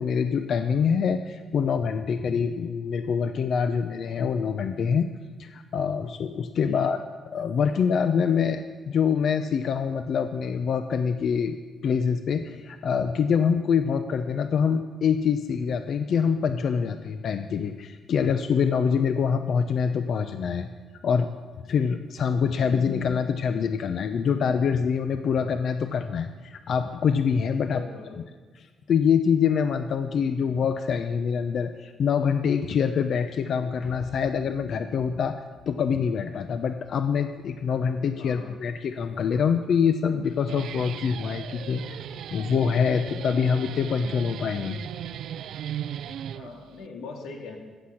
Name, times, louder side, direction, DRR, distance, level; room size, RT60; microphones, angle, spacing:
voice 1, 0.0-5.1 5.4-7.0 7.3-11.6 11.8-20.7 21.0-21.3 21.7-27.8 28.6-35.4 35.7-42.1 42.3-44.8, left 6 dB, 60° left, 8 dB, 0.6 m, -25 dB
voice 2, 27.6-28.2 38.2-38.5 46.3-47.6, left 4 dB, 85° left, 1 dB, 2.4 m, -41 dB
sound 1, 33.8-38.3 38.6-38.7, left 2 dB, 30° left, 3.7 m, -50 dB
Guitar, 40.2-46.9, right 10 dB, 75° right, 0.3 m, -37 dB
14.5 x 8.0 x 5.8 m, 1.4 s
cardioid pair, 90°, 0 cm